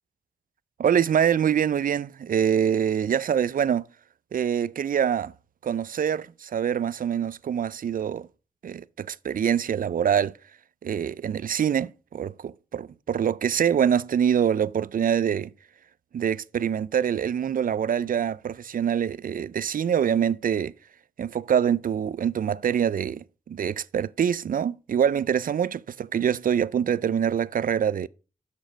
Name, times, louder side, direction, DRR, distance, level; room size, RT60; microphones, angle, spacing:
voice 1, 0.8-3.9 4.3-5.3 5.6-8.3 8.6-10.3 10.8-15.5 16.1-20.7 21.2-28.1, right 8 dB, 65° right, 0.4 m, -25 dB
6.9 x 6.2 x 5.0 m
cardioid pair, 60°, 15 cm